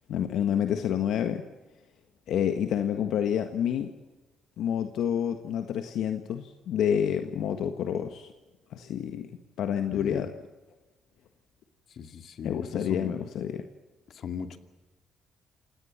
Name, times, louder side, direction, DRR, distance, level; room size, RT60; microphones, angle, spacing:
voice 1, 0.1-1.4 2.3-3.9 4.6-8.3 8.7-9.3 9.6-10.3 12.4-13.6, left 9 dB, 80° left, 7 dB, 1.6 m, -28 dB
voice 2, 9.9-10.2 11.9-13.1 14.1-14.6, left 6 dB, 60° left, 7 dB, 2.5 m, -37 dB
28.5 x 18.0 x 7.5 m, 1.1 s
cardioid pair, 90°, 0 cm